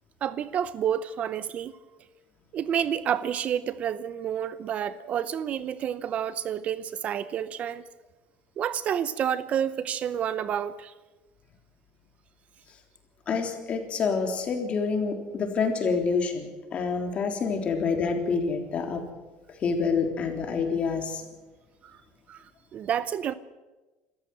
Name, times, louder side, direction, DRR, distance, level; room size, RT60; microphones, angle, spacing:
voice 1, 0.2-1.7 2.5-7.8 8.6-10.9 21.8-22.0 22.3-22.4 22.7-23.3, right 9 dB, 40° right, 0.7 m, -29 dB
voice 2, 13.3-19.0 19.6-21.2, left 5 dB, 35° left, 3.5 m, -27 dB
26.5 x 14.5 x 7.9 m
cardioid pair, 145°, 4 cm